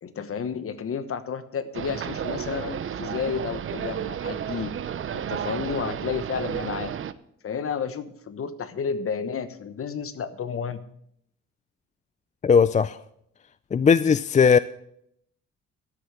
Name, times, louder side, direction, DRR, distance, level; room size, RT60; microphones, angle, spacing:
voice 1, 0.0-4.7 5.1-6.9 7.4-10.8, left 6 dB, 45° left, 1.2 m, -31 dB
sound 1, 1.7-7.1, right 9 dB, 45° right, 0.7 m, -32 dB
voice 2, 12.4-13.0 13.7-14.6, left 6 dB, 25° left, 0.4 m, -18 dB
13.0 x 6.5 x 8.5 m
cardioid pair, 90°, 30 cm